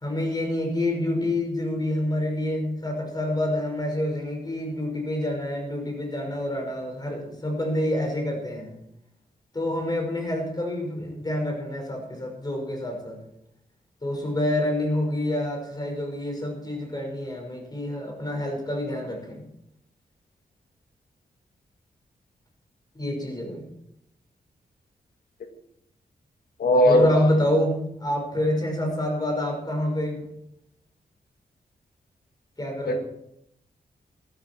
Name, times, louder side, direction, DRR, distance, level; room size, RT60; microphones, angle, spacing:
voice 1, 0.0-8.7 9.5-13.2 14.0-19.4 23.0-23.6 26.8-30.2 32.6-33.0, left 1 dB, 25° left, 1 dB, 5.8 m, -27 dB
voice 2, 26.6-27.1 32.9-33.0, left 1 dB, 85° left, 5 dB, 1.9 m, -17 dB
14.0 x 13.5 x 4.7 m, 0.77 s
wide cardioid pair, 100°, 15 cm